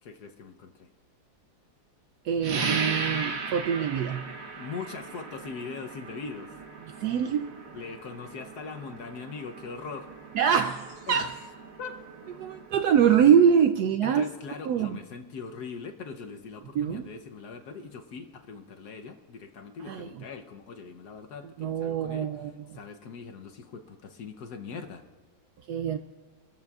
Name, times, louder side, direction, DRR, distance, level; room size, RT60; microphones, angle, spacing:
voice 1, 0.0-0.9 4.6-6.5 7.7-10.1 11.1-11.4 11.8-12.0 14.0-25.0, left 5 dB, 60° left, 5 dB, 1.2 m, -41 dB
voice 2, 2.2-4.2 7.0-7.6 10.3-11.3 12.4-14.3 14.7-15.0 16.7-17.1 19.9-20.1 21.6-22.5 25.7-26.0, right 8 dB, 75° right, 8 dB, 0.9 m, -24 dB
sound 1, 2.4-12.7, right 4 dB, 50° right, 1.2 m, -37 dB
24.5 x 14.0 x 2.4 m, 1.5 s
omnidirectional pair, 2.1 m